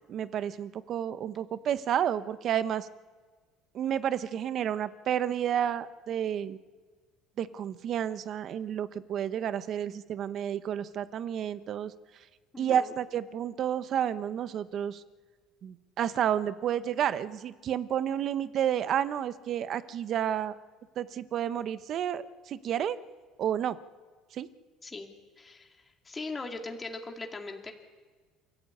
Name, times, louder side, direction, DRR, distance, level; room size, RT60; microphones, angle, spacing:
voice 1, 0.1-2.9 3.7-6.6 7.4-11.9 12.6-15.0 15.6-20.6 21.0-23.0 23.4-23.8 24.3-24.5, right 9 dB, 50° right, 13 dB, 1.0 m, -30 dB
voice 2, 12.5-13.0 24.8-25.1 25.4-27.7, left 3 dB, 20° left, 3 dB, 2.3 m, -40 dB
28.5 x 13.5 x 8.6 m, 1.4 s
cardioid pair, 115°, 0 cm